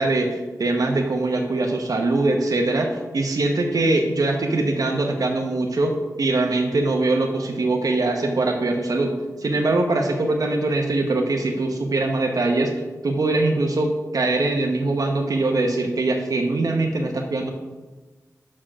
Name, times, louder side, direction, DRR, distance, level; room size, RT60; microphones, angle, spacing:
voice 1, 0.0-9.1 9.4-12.7 13.0-17.5, right 2 dB, 70° right, 2 dB, 0.9 m, -22 dB
6.1 x 4.5 x 6.1 m, 1.2 s
cardioid pair, 45°, 6 cm